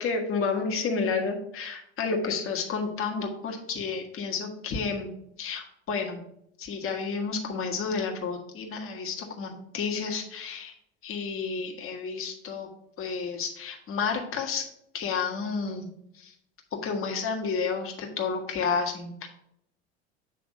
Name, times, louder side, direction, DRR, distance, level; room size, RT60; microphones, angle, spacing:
voice 1, 0.0-5.1 5.4-6.2 6.6-10.7 11.0-12.7 13.0-14.6 14.9-15.9 16.1-16.3 16.7-19.3, left 5 dB, 40° left, 2 dB, 1.6 m, -31 dB
8.1 x 3.4 x 5.2 m, 0.74 s
hypercardioid pair, 85°, 33 cm